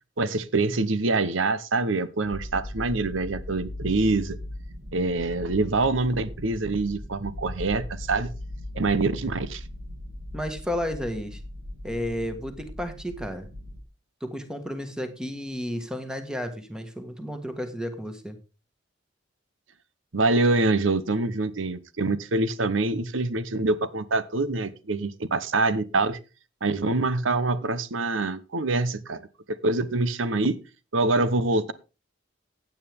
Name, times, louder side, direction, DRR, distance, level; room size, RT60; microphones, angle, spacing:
voice 1, 0.2-4.4 4.9-8.3 8.7-9.6 20.1-26.2 26.6-29.2 29.5-30.6 30.9-31.7, right 3 dB, 90° right, 0.9 m, -25 dB
sound 1, 2.2-13.8, left 1 dB, 75° right, 2.7 m, -39 dB
voice 2, 10.3-11.4 11.8-13.5 14.2-18.4, equal, 5° right, 1.7 m, -32 dB
16.0 x 9.1 x 3.6 m
head